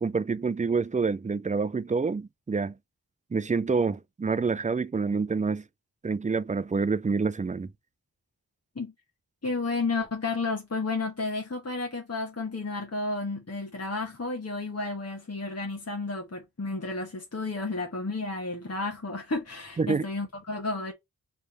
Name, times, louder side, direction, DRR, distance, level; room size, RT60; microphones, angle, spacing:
voice 1, 0.0-2.7 3.3-5.6 6.0-7.7 19.8-20.0, right 4 dB, 20° right, 0.3 m, -27 dB
voice 2, 9.4-20.9, left 3 dB, 40° left, 1.1 m, -32 dB
3.4 x 3.3 x 4.0 m
wide cardioid pair, 50°, 39 cm